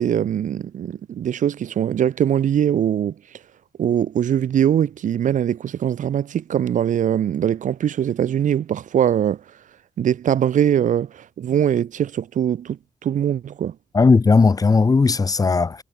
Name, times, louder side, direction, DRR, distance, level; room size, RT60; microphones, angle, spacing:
voice 1, 0.0-3.1 3.8-9.4 10.0-13.7, right 9 dB, 80° right, 4.8 m, -22 dB
voice 2, 13.9-15.8, left 4 dB, 30° left, 2.0 m, -16 dB
wide cardioid pair, 140°, 13 cm